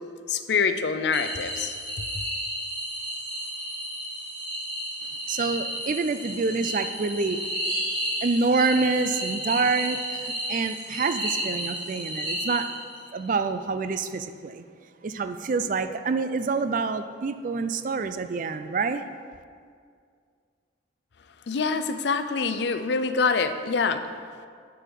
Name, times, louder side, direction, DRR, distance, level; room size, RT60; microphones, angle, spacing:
voice 1, 0.3-1.7 2.1-2.2 21.5-24.0, left 5 dB, 65° left, 9 dB, 0.5 m, -25 dB
sound 1, 1.1-13.1, equal, 25° right, 2.3 m, -32 dB
voice 2, 5.3-7.4 8.2-12.7 13.1-14.6 15.0-19.1, right 4 dB, 45° right, 10 dB, 0.3 m, -27 dB
9.9 x 4.6 x 5.2 m, 2.2 s
head